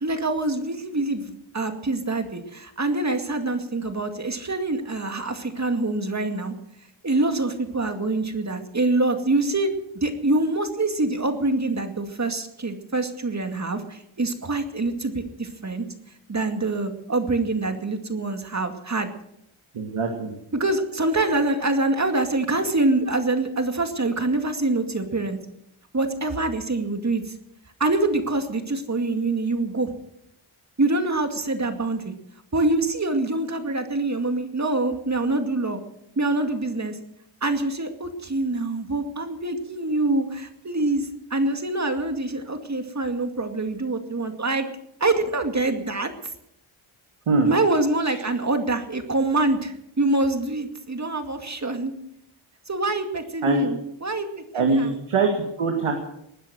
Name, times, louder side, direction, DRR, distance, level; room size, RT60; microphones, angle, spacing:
voice 1, 0.0-6.5 7.0-9.7 10.0-15.8 16.3-19.1 20.5-25.4 25.9-27.3 27.8-29.9 30.8-32.1 32.5-35.8 36.2-37.0 37.4-44.7 45.0-46.1 47.4-51.9 52.7-54.9, right 2 dB, 35° right, 6 dB, 2.3 m, -25 dB
voice 2, 19.7-20.3 47.3-47.5 53.4-53.7 54.5-55.9, right 3 dB, 90° right, 2 dB, 2.3 m, -22 dB
19.5 x 10.0 x 6.5 m, 0.77 s
cardioid pair, 75°, 50 cm